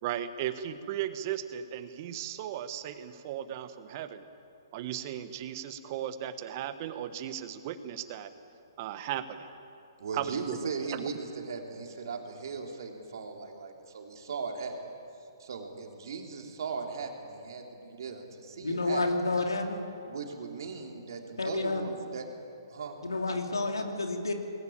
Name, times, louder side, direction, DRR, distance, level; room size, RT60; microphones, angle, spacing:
voice 1, 0.0-4.2 4.7-8.3 8.8-9.5 10.1-10.6, right 11 dB, 40° right, 11 dB, 1.3 m, -36 dB
voice 2, 10.0-14.8 15.4-19.0 20.1-22.3 22.7-23.0, right 5 dB, 60° right, 2 dB, 3.3 m, -38 dB
voice 3, 18.6-19.9 21.4-21.9 23.0-24.3, left 2 dB, 85° left, 4 dB, 2.8 m, -30 dB
20.0 x 18.0 x 8.8 m, 2.7 s
figure-of-eight pair, 130°, 2 cm